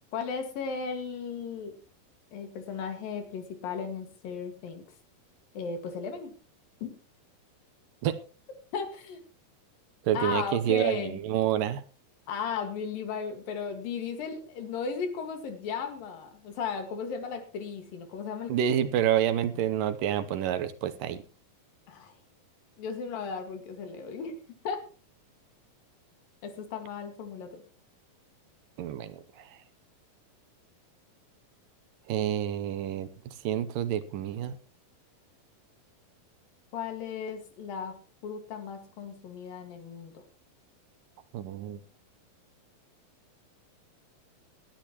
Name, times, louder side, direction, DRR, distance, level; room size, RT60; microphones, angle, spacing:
voice 1, 0.1-1.7 2.3-4.8 5.6-6.3 6.8-6.9 8.7-9.2 10.1-11.2 12.3-18.5 19.6-19.7 21.9-22.1 22.8-24.4 24.6-24.8 26.4-27.6 36.7-38.0 38.2-40.2, left 6 dB, 75° left, 6 dB, 3.6 m, -35 dB
voice 2, 10.0-11.8 18.5-21.2 28.8-29.6 32.1-34.6 41.3-41.8, right 10 dB, 75° right, 12 dB, 2.4 m, -28 dB
19.5 x 12.0 x 3.0 m, 0.36 s
omnidirectional pair, 4.1 m